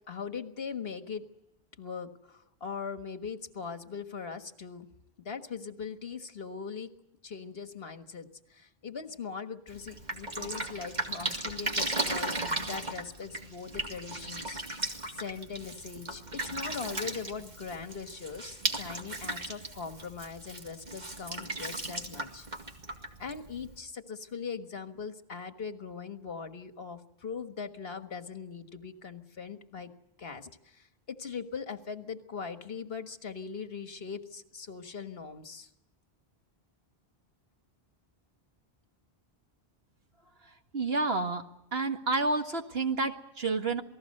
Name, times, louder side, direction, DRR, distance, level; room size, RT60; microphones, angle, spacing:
voice 1, 0.1-1.2 1.8-4.9 5.2-6.9 7.2-14.6 15.1-22.5 23.2-29.9 30.2-35.7, left 5 dB, 70° left, 8 dB, 1.7 m, -40 dB
Drip, 9.7-23.8, right 2 dB, 45° right, 2.4 m, -36 dB
voice 2, 40.7-41.4 41.7-43.8, right 3 dB, 75° right, 5 dB, 2.0 m, -29 dB
28.0 x 19.0 x 6.6 m, 0.86 s
omnidirectional pair, 1.0 m